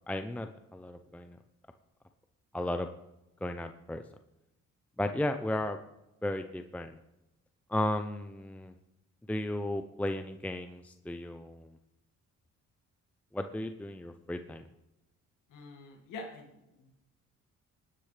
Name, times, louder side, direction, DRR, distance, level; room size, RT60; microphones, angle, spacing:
voice 1, 0.1-1.4 2.5-2.9 3.4-4.0 5.0-5.8 6.2-7.0 7.7-8.7 9.3-11.7 13.3-14.7, left 1 dB, 5° left, 7 dB, 0.6 m, -34 dB
voice 2, 15.5-16.9, left 2 dB, 85° left, 1 dB, 2.2 m, -46 dB
19.0 x 10.0 x 3.3 m, 0.92 s
cardioid pair, 90°, 30 cm